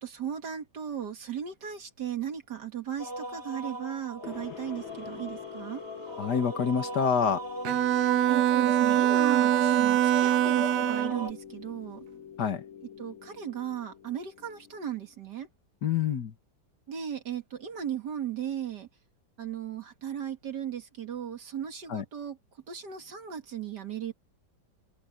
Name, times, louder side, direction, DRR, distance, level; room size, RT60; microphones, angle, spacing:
voice 1, 0.0-5.8 8.3-12.0 13.0-15.5 16.9-18.9 19.4-22.4 22.7-24.1, right 9 dB, 55° right, 2.2 m, -36 dB
sound 1, 3.0-11.3, right 1 dB, 30° right, 4.8 m, -38 dB
sound 2, 4.2-15.1, left 9 dB, 80° left, 1.8 m, -46 dB
voice 2, 6.2-7.4 12.4-12.6 15.8-16.3 21.9-22.0, left 7 dB, 55° left, 1.9 m, -27 dB
Bowed string instrument, 7.6-11.3, right 13 dB, 90° right, 0.8 m, -24 dB
omnidirectional pair, 2.2 m